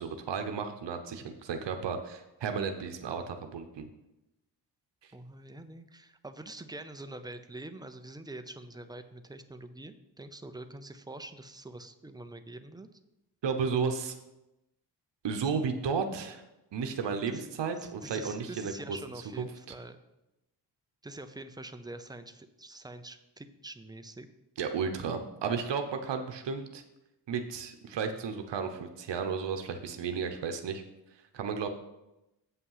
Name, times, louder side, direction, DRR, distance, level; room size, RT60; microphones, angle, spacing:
voice 1, 0.0-3.9 13.4-14.1 15.2-16.4 16.7-18.7 19.4-19.5 24.6-26.8 27.3-30.8 31.3-31.7, right 5 dB, 75° right, 6 dB, 0.9 m, -33 dB
voice 2, 5.1-12.9 17.2-17.5 17.8-20.0 21.0-24.3, right 2 dB, 10° right, 8 dB, 0.5 m, -45 dB
8.2 x 5.7 x 5.6 m, 0.93 s
wide cardioid pair, 140°, 43 cm